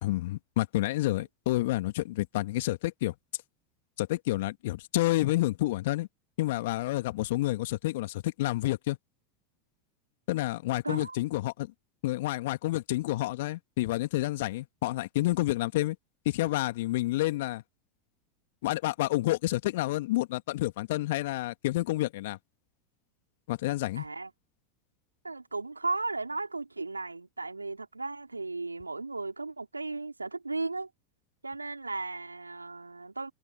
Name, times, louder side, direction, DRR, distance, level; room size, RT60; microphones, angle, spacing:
voice 1, 0.0-3.1 4.0-6.1 6.4-9.0 10.3-11.7 12.0-16.0 16.3-17.6 18.6-22.4 23.5-24.0, left 17 dB, 60° left, 2.1 m, -29 dB
voice 2, 10.8-11.2 24.0-24.3 25.2-30.9 31.4-33.3, right 3 dB, 90° right, 3.9 m, -35 dB
figure-of-eight pair, 85°, 0 cm